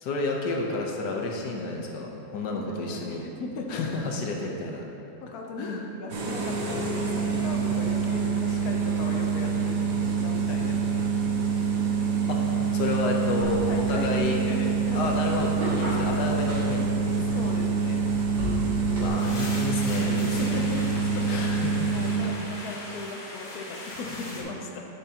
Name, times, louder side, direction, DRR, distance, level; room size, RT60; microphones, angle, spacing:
voice 1, 0.0-3.2 3.7-4.8 5.6-5.8 12.3-12.4 12.7-14.4 14.9-17.2 19.0-20.7 21.3-22.1 24.3-24.6, left 3 dB, 85° left, 0 dB, 1.5 m, -30 dB
voice 2, 2.5-3.8 5.2-9.8 10.2-11.1 13.4-15.2 17.3-18.2 20.3-20.8 21.2-21.4 21.9-24.9, left 3 dB, 70° left, 1 dB, 1.2 m, -37 dB
sound 1, 6.1-22.2, right 5 dB, 60° right, 1.3 m, -26 dB
sound 2, 13.4-19.1, equal, 75° right, 2.4 m, -36 dB
sound 3, 19.2-24.4, left 1 dB, 35° left, 1.1 m, -39 dB
10.5 x 7.1 x 2.9 m, 2.9 s
omnidirectional pair, 1.7 m